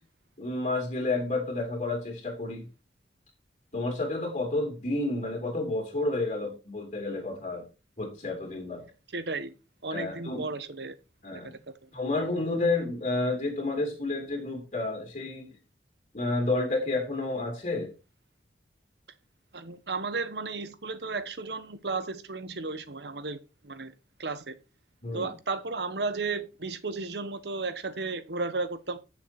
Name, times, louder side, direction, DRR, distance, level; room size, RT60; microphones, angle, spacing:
voice 1, 0.4-2.7 3.7-7.6 8.0-8.8 9.9-10.5 11.2-11.6 11.9-15.5 16.1-17.9 25.0-25.3, left 2 dB, 45° left, 3.0 m, -30 dB
voice 2, 9.1-9.5 9.8-10.9 11.3-11.9 19.5-23.9 24.2-24.5 25.1-29.0, right 3 dB, 75° right, 1.2 m, -34 dB
9.1 x 7.1 x 4.3 m
head